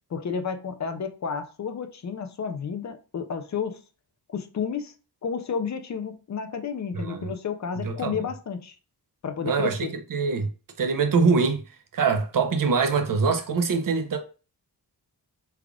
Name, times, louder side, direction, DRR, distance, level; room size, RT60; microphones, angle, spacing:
voice 1, 0.1-3.8 4.3-4.9 5.2-8.8 9.2-9.9, left 6 dB, 45° left, 0.5 m, -31 dB
voice 2, 6.9-7.3 7.8-8.2 9.4-10.5 10.8-11.6 11.9-14.2, right 5 dB, 55° right, 0.6 m, -24 dB
3.4 x 2.4 x 3.5 m
wide cardioid pair, 155°, 40 cm